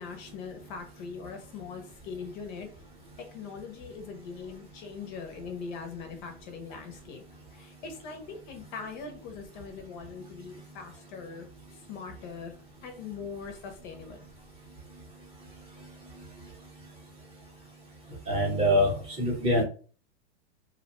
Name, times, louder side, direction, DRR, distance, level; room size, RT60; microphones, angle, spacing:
voice 1, 0.0-2.7 3.2-7.2 7.5-12.6 12.8-14.2, left 5 dB, 40° left, 5 dB, 0.5 m, -41 dB
voice 2, 18.3-19.6, equal, 15° right, -2 dB, 0.7 m, -24 dB
2.5 x 2.1 x 2.8 m, 0.40 s
supercardioid pair, 145°, 35 cm